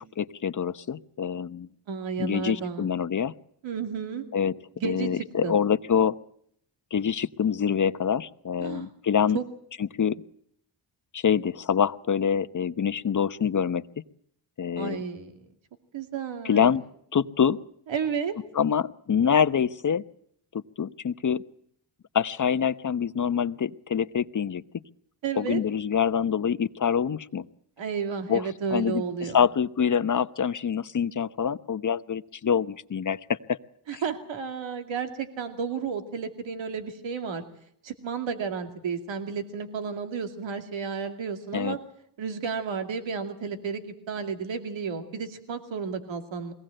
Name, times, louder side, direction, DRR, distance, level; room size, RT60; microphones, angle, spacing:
voice 1, 0.0-1.7 2.2-3.3 4.3-4.5 4.8-6.2 6.9-9.4 10.0-10.2 11.1-13.8 14.6-15.0 16.4-16.8 17.1-17.6 18.5-20.0 20.5-21.4 22.1-24.6 25.4-27.5 28.3-29.0 29.3-33.6 33.9-34.0 41.5-41.8, left 7 dB, 40° left, 12 dB, 1.0 m, -25 dB
voice 2, 1.9-2.9 3.6-4.2 4.8-5.6 8.6-8.9 9.3-9.4 14.8-15.4 15.9-16.7 17.9-18.4 25.2-25.6 27.8-29.4 33.9-37.4 37.8-41.8 42.2-43.8 44.1-46.5, right 6 dB, 75° right, 6 dB, 2.5 m, -32 dB
22.5 x 18.0 x 7.8 m, 0.67 s
cardioid pair, 70°, 46 cm